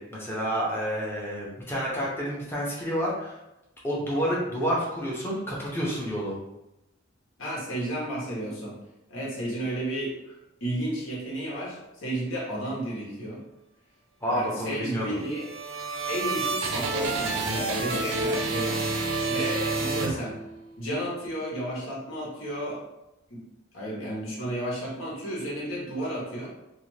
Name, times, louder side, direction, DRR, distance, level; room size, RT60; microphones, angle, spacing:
voice 1, 0.0-3.4 3.8-6.4 14.2-15.1, equal, 10° left, -5 dB, 0.6 m, -29 dB
voice 2, 7.4-8.7 9.1-10.1 10.6-13.4 14.3-15.4 16.1-18.8 19.3-20.3 20.8-22.8 23.3-23.4 23.7-26.5, right 1 dB, 85° left, -5 dB, 1.1 m, -32 dB
sound 1, 15.1-20.7, right 3 dB, 80° right, 0.5 m, -29 dB
2.5 x 2.4 x 3.1 m, 0.92 s
head